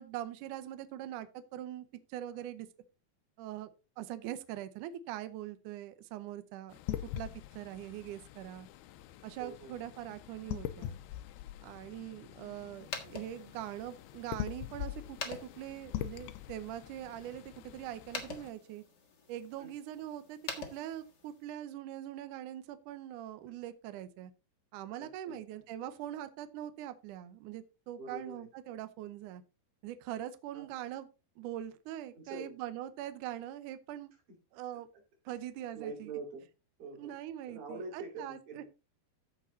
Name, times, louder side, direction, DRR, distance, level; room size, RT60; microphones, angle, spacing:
voice 1, 0.0-2.7 3.4-3.7 4.0-6.8 7.2-7.3 7.6-8.7 9.2-11.0 11.6-17.4 17.7-18.8 19.3-24.3 24.7-29.4 29.8-31.1 31.4-34.1 34.5-34.9 35.3-36.1 37.0-38.6, right 12 dB, 85° right, 11 dB, 1.8 m, -42 dB
sound 1, 6.7-18.5, left 13 dB, 80° left, 2.4 m, -43 dB
voice 2, 9.4-9.7 19.6-19.7 25.0-25.4 28.0-28.5 30.5-30.7 32.1-32.5 34.3-34.4 35.3-35.4 35.7-36.5 36.8-37.1 37.5-38.7, right 3 dB, 60° right, 0 dB, 5.0 m, -45 dB
sound 2, 12.7-21.5, left 5 dB, 65° left, 1.0 m, -47 dB
14.5 x 5.0 x 4.0 m, 0.30 s
omnidirectional pair, 4.7 m